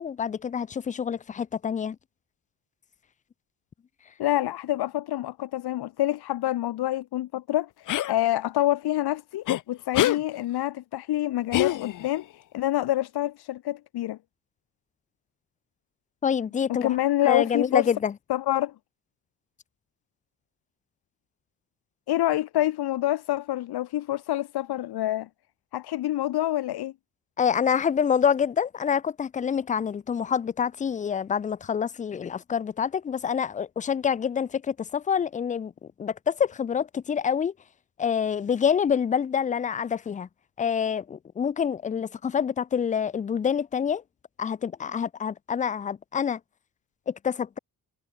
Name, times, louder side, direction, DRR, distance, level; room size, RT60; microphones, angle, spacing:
voice 1, 0.0-2.0 16.2-17.0 17.2-18.1 27.4-35.7 36.0-37.5 38.0-40.3 40.6-44.0 44.4-46.4 47.1-47.6, left 7 dB, 20° left, 0.4 m, -26 dB
voice 2, 4.2-14.2 16.8-17.9 18.3-18.7 22.1-25.3 25.7-26.9, left 14 dB, 80° left, 1.9 m, -27 dB
sound 1, 7.9-8.1 9.5-9.6 9.9-10.2 11.5-12.2, left 13 dB, 55° left, 0.7 m, -25 dB
cardioid pair, 135°, 38 cm